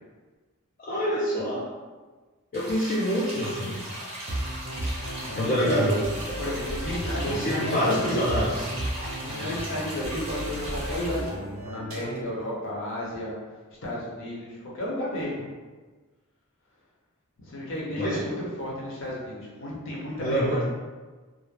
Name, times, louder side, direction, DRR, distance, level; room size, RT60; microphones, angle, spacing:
voice 1, 0.8-1.7 2.5-3.8 5.4-6.0 7.2-8.7 18.0-18.4 20.2-20.6, equal, 35° left, -7 dB, 0.3 m, -26 dB
sound 1, 2.5-11.3, right 1 dB, 30° right, 0.5 m, -38 dB
sound 2, 4.3-12.4, equal, 75° right, 0.5 m, -34 dB
voice 2, 5.2-5.9 6.4-8.3 9.2-13.3 13.8-15.5 17.4-20.6, left 1 dB, 60° left, -5 dB, 0.7 m, -33 dB
2.3 x 2.1 x 3.1 m, 1.3 s
head